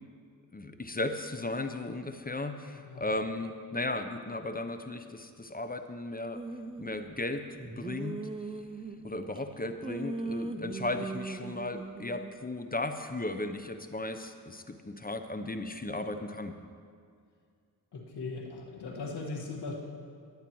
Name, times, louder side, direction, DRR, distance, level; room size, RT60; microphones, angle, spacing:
voice 1, 0.5-6.4 6.8-8.2 9.0-16.5, left 2 dB, 25° left, 8 dB, 0.7 m, -35 dB
voice 2, 2.7-3.1 17.9-19.7, left 3 dB, 90° left, -1 dB, 1.7 m, -39 dB
sound 1, 6.3-7.0 7.6-9.4 9.8-12.3, right 3 dB, 15° right, 0.4 m, -39 dB
19.5 x 8.8 x 3.1 m, 2.2 s
cardioid pair, 65°, 39 cm